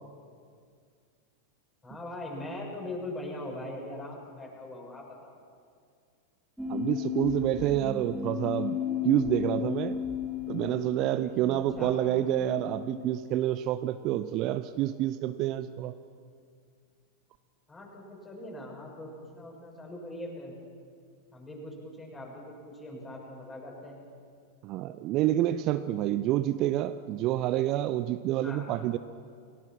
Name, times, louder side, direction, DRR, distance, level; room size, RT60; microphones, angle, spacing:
voice 1, 1.8-5.4 11.6-11.9 17.7-20.5 21.3-24.0 28.4-28.7, left 1 dB, 15° left, -1 dB, 7.2 m, -41 dB
sound 1, 6.6-13.5, left 8 dB, ahead, 3.1 m, -35 dB
voice 2, 6.7-8.8 9.0-10.0 10.5-15.9 24.6-29.0, right 13 dB, 40° right, 12 dB, 0.7 m, -28 dB
29.5 x 18.5 x 5.9 m, 2.2 s
figure-of-eight pair, 90°, 0 cm